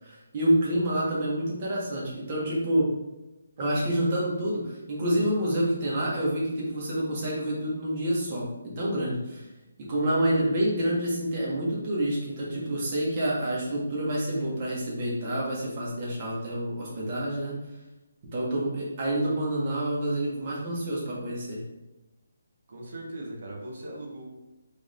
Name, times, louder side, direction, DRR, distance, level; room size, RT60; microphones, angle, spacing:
voice 1, 0.0-2.9 3.6-9.4 9.8-17.6 18.3-21.6, right 1 dB, 30° right, -5 dB, 1.3 m, -28 dB
voice 2, 10.4-10.8 22.7-24.2, right 1 dB, 50° right, -1 dB, 1.2 m, -40 dB
4.8 x 3.5 x 2.5 m, 1.0 s
hypercardioid pair, 170°, 0 cm